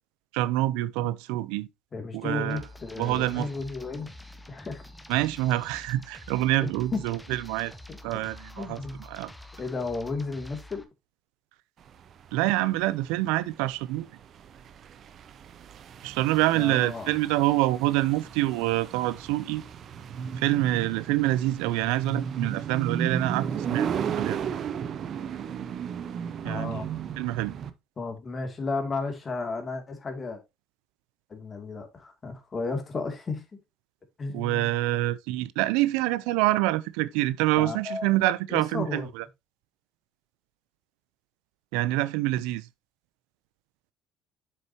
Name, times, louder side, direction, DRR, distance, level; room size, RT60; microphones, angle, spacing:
voice 1, 0.3-1.7 2.1-2.6 3.0-3.5 5.1-7.7 8.0-8.8 9.1-9.3 12.3-14.1 16.0-19.6 20.4-23.9 24.2-24.4 26.4-26.8 27.2-27.5 34.3-39.2 41.7-42.7, right 17 dB, 90° right, 0.5 m, -26 dB
voice 2, 1.9-4.1 4.5-4.8 6.6-7.0 7.9-8.0 8.6-9.0 9.6-10.8 16.5-17.2 26.4-26.9 28.0-30.4 31.3-33.4 34.2-34.7 37.6-38.1 38.5-39.1, left 3 dB, 30° left, 2.5 m, -33 dB
sound 1, 2.5-10.8, left 1 dB, 5° left, 1.1 m, -47 dB
sound 2, 11.9-27.7, right 7 dB, 50° right, 0.9 m, -34 dB
7.7 x 6.5 x 2.8 m
cardioid pair, 100°, 0 cm